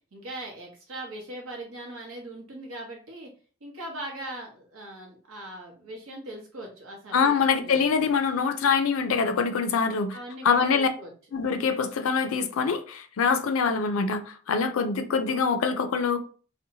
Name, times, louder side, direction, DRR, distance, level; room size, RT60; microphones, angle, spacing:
voice 1, 0.1-3.3 3.6-8.1 10.1-11.1, right 1 dB, 80° right, 0.9 m, -40 dB
voice 2, 7.1-10.2 10.4-10.9 11.3-16.2, left 5 dB, 75° left, 0.4 m, -24 dB
2.7 x 2.1 x 2.7 m
head